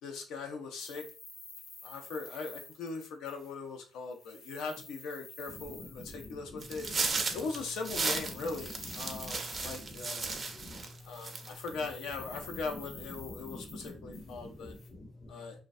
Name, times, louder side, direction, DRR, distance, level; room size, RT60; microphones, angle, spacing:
voice 1, 0.0-1.0 1.8-6.9 7.3-10.3 11.0-14.7 15.3-15.6, left 4 dB, 90° left, 0.4 m, -40 dB
sound 1, 0.8-3.8 4.0-6.8 7.4-10.7 11.0-14.9, left 3 dB, 70° left, 0.9 m, -51 dB
voice 2, 5.7-7.2 9.1-10.9 13.3-15.3, left 1 dB, 40° left, 0.5 m, -48 dB
sound 2, 6.6-10.9 11.2-11.7, right 4 dB, 40° right, 0.4 m, -35 dB
2.3 x 2.1 x 2.5 m
cardioid pair, 90°, 0 cm